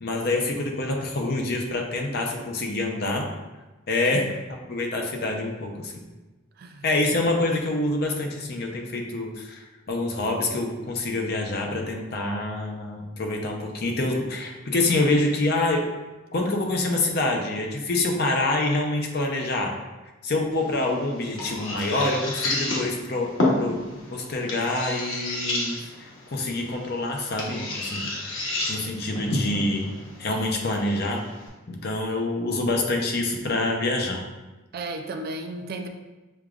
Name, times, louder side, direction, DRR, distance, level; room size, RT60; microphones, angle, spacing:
voice 1, 0.0-3.3 3.9-4.2 4.7-5.9 6.8-9.6 9.9-15.8 16.3-19.7 20.2-23.3 23.6-23.8 24.1-28.1 28.7-29.9 30.2-31.2 31.7-34.2, left 2 dB, 50° left, 1 dB, 0.6 m, -26 dB
sound 1, 20.5-31.5, left 2 dB, 85° left, 1.0 m, -31 dB
voice 2, 34.7-35.9, right 2 dB, 50° right, 5 dB, 0.4 m, -34 dB
6.5 x 2.3 x 2.4 m, 1.1 s
head